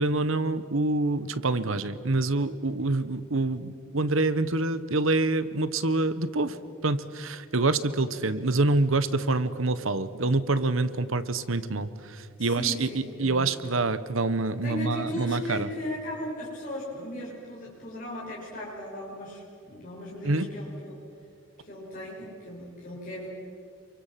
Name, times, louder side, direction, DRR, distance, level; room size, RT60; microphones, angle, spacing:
voice 1, 0.0-6.6 6.8-15.7 20.2-20.5, right 2 dB, 70° right, 14 dB, 1.2 m, -26 dB
voice 2, 12.4-13.6 14.6-21.0 21.6-23.3, left 1 dB, 40° left, -5 dB, 6.0 m, -37 dB
28.0 x 23.5 x 7.6 m, 2.4 s
head